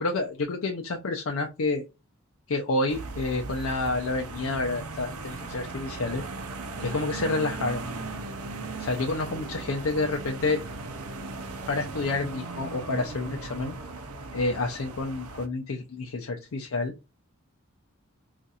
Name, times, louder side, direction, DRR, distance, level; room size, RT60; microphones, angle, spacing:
voice 1, 0.0-1.8 2.5-6.2 6.8-7.8 8.8-10.6 11.7-13.8 14.3-16.9, left 2 dB, 70° left, 2 dB, 0.5 m, -29 dB
sound 1, 2.9-15.5, right 3 dB, 85° right, 0.6 m, -37 dB
4.0 x 2.5 x 2.4 m, 0.27 s
head